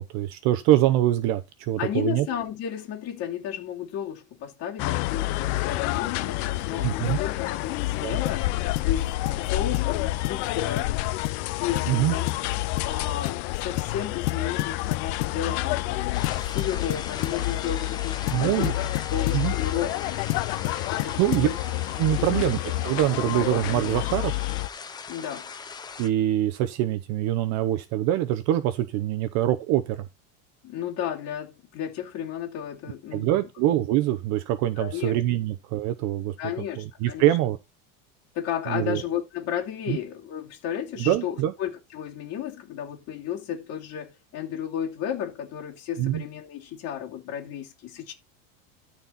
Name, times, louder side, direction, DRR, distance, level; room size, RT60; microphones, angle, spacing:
voice 1, 0.0-2.3 6.8-7.2 8.0-8.2 11.9-12.1 18.3-18.7 19.3-19.5 21.2-21.5 22.0-22.6 22.8-24.4 26.0-30.1 33.1-36.3 36.8-37.6 38.7-39.0 39.9-40.0 41.0-41.5 46.0-46.2, right 13 dB, 40° right, 0.8 m, -24 dB
voice 2, 1.8-8.5 8.8-11.2 11.6-12.3 12.8-18.7 19.1-20.0 20.9-21.5 22.1-22.4 25.1-25.5 30.6-33.3 34.8-35.1 36.4-37.3 38.3-48.1, left 9 dB, 35° left, 2.6 m, -33 dB
sound 1, 4.8-24.7, left 17 dB, 55° left, 0.6 m, -29 dB
sound 2, 8.3-8.5 8.8-8.9 9.3-9.5 9.7-9.9 10.2-10.5 10.8-10.9 11.2-11.4 11.8-12.0 12.3-12.5 12.8-12.9 13.2-13.4 13.8-14.0 14.3-15.4 16.2-17.4 18.3-19.5 20.3-21.5, left 18 dB, 85° left, 0.9 m, -31 dB
sound 3, 16.1-26.1, left 5 dB, 10° left, 0.5 m, -40 dB
13.0 x 4.4 x 4.1 m
supercardioid pair, 160°, 41 cm